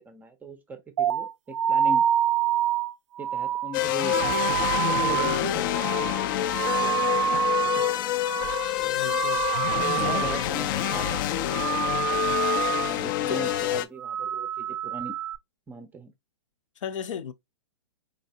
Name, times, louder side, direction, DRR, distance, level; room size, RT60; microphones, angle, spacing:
voice 1, 0.0-2.1 3.2-6.2 6.8-7.9 8.8-9.2 9.8-11.2 12.8-15.2 15.7-16.1, right 3 dB, 10° right, 0.5 m, -39 dB
sound 1, 1.0-8.0 8.2-8.7 9.0-10.5 10.7-11.2 11.5-13.0 13.3-13.7 14.0-15.4, right 10 dB, 65° right, 0.4 m, -27 dB
sound 2, 3.7-13.8, left 12 dB, 40° left, 0.4 m, -27 dB
voice 2, 8.9-10.6 12.9-13.0 13.3-13.4 16.8-17.3, left 7 dB, 75° left, 0.8 m, -36 dB
4.0 x 3.1 x 2.7 m
hypercardioid pair, 135°, 16 cm